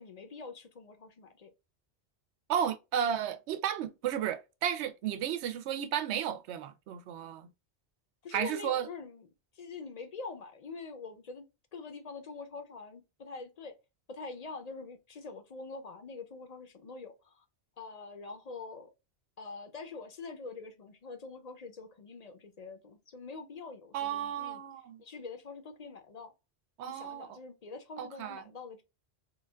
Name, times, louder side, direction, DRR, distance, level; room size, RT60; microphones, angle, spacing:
voice 1, 0.0-1.5 8.2-9.2 9.6-13.7 14.1-17.4 17.8-18.9 19.4-24.6 25.0-26.3 26.8-28.8, left 4 dB, 50° left, 0.5 m, -45 dB
voice 2, 2.5-7.5 8.3-8.9 23.9-25.0 26.8-27.4 28.0-28.4, right 9 dB, 90° right, 0.9 m, -33 dB
3.7 x 2.3 x 2.2 m
omnidirectional pair, 1.1 m